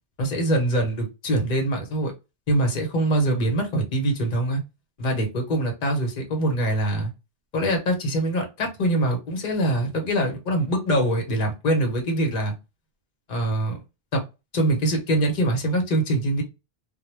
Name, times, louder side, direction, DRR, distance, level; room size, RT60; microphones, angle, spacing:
voice 1, 0.2-2.1 2.5-4.6 5.0-7.1 7.5-12.5 13.3-13.8 14.1-14.2 14.5-16.4, right 1 dB, 50° left, 0.9 m, -23 dB
2.1 x 2.1 x 3.1 m
omnidirectional pair, 1.1 m